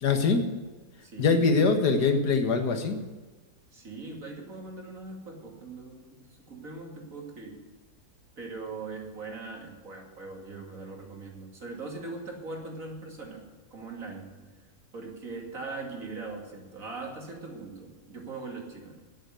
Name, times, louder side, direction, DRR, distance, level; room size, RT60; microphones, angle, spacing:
voice 1, 0.0-0.5 1.2-3.0, left 4 dB, 85° left, 6 dB, 2.0 m, -23 dB
voice 2, 1.0-1.5 3.7-7.6 8.4-13.4 13.7-14.3 14.9-19.0, right 3 dB, 55° right, 0 dB, 3.0 m, -40 dB
11.5 x 8.1 x 9.2 m, 1.3 s
omnidirectional pair, 1.7 m